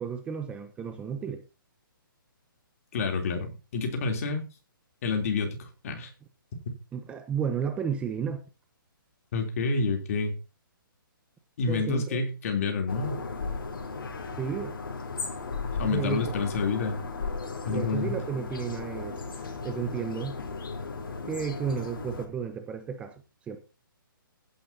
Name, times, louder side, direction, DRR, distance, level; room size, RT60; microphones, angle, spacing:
voice 1, 0.0-1.4 6.9-8.4 11.7-12.2 14.4-14.7 15.8-16.3 17.7-20.4 21.3-23.6, right 7 dB, 10° right, 0.8 m, -33 dB
voice 2, 2.9-4.4 5.0-6.1 9.3-10.3 11.6-13.2 15.8-17.0 17.6-18.2, left 4 dB, 40° left, 3.3 m, -28 dB
sound 1, 12.9-22.3, left 4 dB, 70° left, 3.7 m, -36 dB
16.0 x 9.6 x 2.8 m
hypercardioid pair, 165°, 12 cm